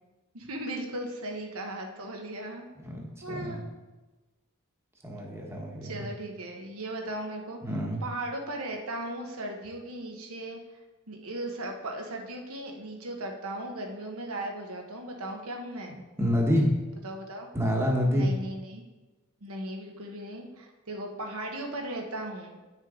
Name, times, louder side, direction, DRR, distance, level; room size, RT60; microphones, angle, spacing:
voice 1, 0.3-2.7 3.2-3.7 5.8-7.6 8.0-10.6 11.1-16.0 17.0-17.5 18.1-18.8 19.4-22.6, right 1 dB, 80° right, 2 dB, 1.2 m, -37 dB
voice 2, 3.3-3.6 5.0-5.9 7.6-8.0 16.2-16.7 17.5-18.3, equal, 10° right, -1 dB, 1.2 m, -27 dB
9.5 x 6.4 x 3.8 m, 1.1 s
head